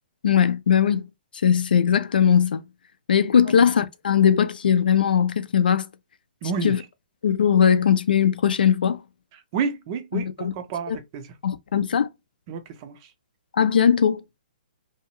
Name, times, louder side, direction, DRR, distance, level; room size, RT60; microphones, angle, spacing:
voice 1, 0.2-1.0 1.4-2.6 3.1-5.8 6.6-6.8 7.2-9.0 10.1-10.5 10.9-11.0 11.4-12.1 13.6-14.2, left 8 dB, 80° left, 0.5 m, -19 dB
voice 2, 6.4-6.8 9.5-11.3 12.5-13.0, right 5 dB, 30° right, 0.5 m, -29 dB
2.8 x 2.3 x 2.9 m
hypercardioid pair, 160°, 5 cm